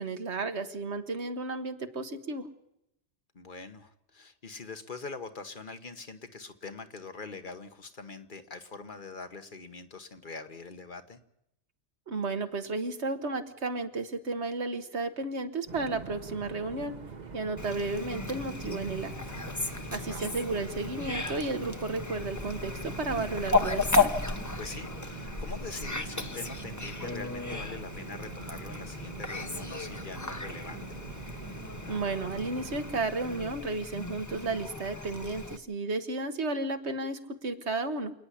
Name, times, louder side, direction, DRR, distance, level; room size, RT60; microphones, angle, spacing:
voice 1, 0.0-2.5 12.1-16.9 17.3-19.4 19.9-24.1 31.9-38.1, right 3 dB, 80° right, 8 dB, 1.8 m, -33 dB
voice 2, 3.3-11.2 20.0-20.2 24.6-30.8, left 4 dB, 50° left, 8 dB, 1.4 m, -43 dB
sound 1, 15.7-32.9, right 4 dB, 40° right, 1.1 m, -44 dB
Fowl, 17.6-35.6, left 3 dB, 15° left, 1.0 m, -34 dB
28.0 x 9.7 x 10.0 m, 0.81 s
omnidirectional pair, 1.1 m